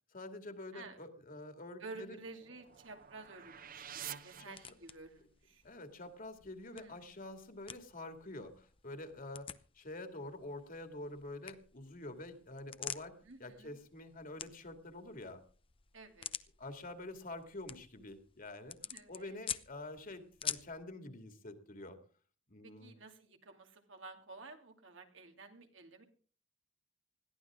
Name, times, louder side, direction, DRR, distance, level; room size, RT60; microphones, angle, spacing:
voice 1, 0.1-2.2 4.4-4.6 5.6-9.5 9.7-15.4 16.6-18.8 19.1-22.0 22.5-22.9, left 2 dB, 45° left, 7 dB, 2.3 m, -47 dB
sound 1, 1.8-5.2, right 9 dB, 50° right, 0.9 m, -50 dB
voice 2, 1.8-5.6 6.7-7.0 13.2-13.7 15.9-16.3 18.8-19.4 22.6-26.0, right 3 dB, 80° right, 4 dB, 2.7 m, -52 dB
sound 2, 2.7-20.8, left 8 dB, 30° left, 0.7 m, -49 dB
21.0 x 15.0 x 3.7 m, 0.40 s
head